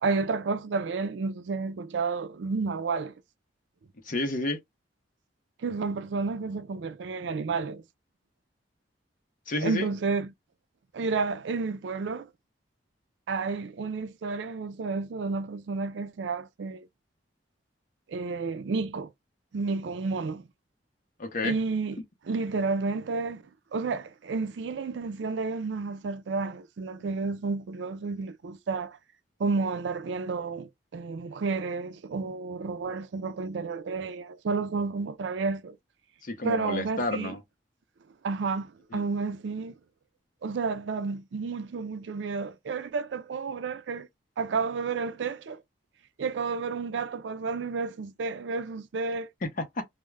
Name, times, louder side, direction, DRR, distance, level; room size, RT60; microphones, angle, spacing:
voice 1, 0.0-3.1 5.6-7.8 9.6-10.3 10.9-12.3 13.3-16.9 18.1-19.1 19.5-20.4 21.4-22.0 22.3-23.4 23.7-29.0 29.4-35.8 36.4-37.4 38.2-39.7 40.4-44.1 44.4-45.6 46.2-49.3, right 4 dB, 70° right, 0.4 m, -31 dB
voice 2, 4.0-4.6 9.5-9.9 21.2-21.5 36.2-37.4 38.9-39.1 49.4-49.8, left 2 dB, 50° left, 0.7 m, -31 dB
2.3 x 2.1 x 3.1 m
head